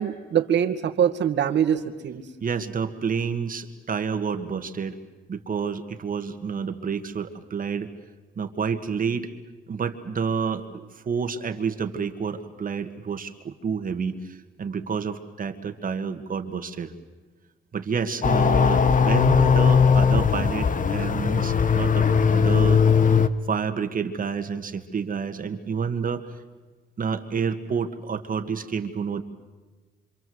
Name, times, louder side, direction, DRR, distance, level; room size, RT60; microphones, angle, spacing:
voice 1, 0.0-2.2, right 9 dB, 65° right, 7 dB, 2.1 m, -23 dB
voice 2, 2.4-5.0 5.3-7.9 8.4-9.3 9.7-10.6 11.1-14.2 14.6-16.9 17.7-22.8 23.5-26.2 27.0-29.2, right 6 dB, 45° right, 7 dB, 1.9 m, -29 dB
sound 1, 18.2-23.3, left 6 dB, 40° left, 1.3 m, -19 dB
26.5 x 26.5 x 8.0 m, 1.3 s
cardioid pair, 90°, 20 cm